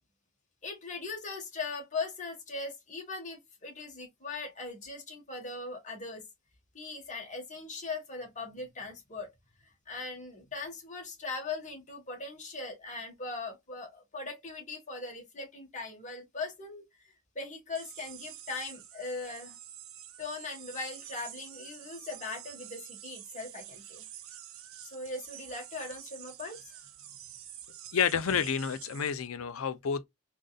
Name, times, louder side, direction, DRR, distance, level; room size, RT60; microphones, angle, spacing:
voice 1, 0.6-6.2 6.7-9.3 9.6-17.1 17.3-19.6 20.2-24.0 24.8-26.7 27.9-28.0, left 3 dB, 35° left, 1.5 m, -40 dB
sound 1, 17.7-29.3, right 11 dB, 75° right, 0.7 m, -48 dB
voice 2, 27.9-30.1, left 7 dB, 80° left, 0.5 m, -29 dB
3.8 x 2.5 x 2.4 m
head